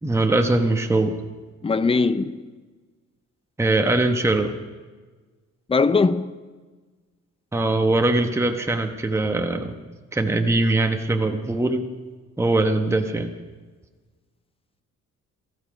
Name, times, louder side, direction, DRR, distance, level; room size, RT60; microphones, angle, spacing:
voice 1, 0.0-1.2 3.6-4.5 7.5-9.8 10.1-11.9 12.4-13.3, right 2 dB, 10° right, 1.0 m, -21 dB
voice 2, 1.6-2.4 5.7-6.3, left 4 dB, 20° left, 0.6 m, -20 dB
18.0 x 14.5 x 5.1 m
cardioid pair, 115°, 30 cm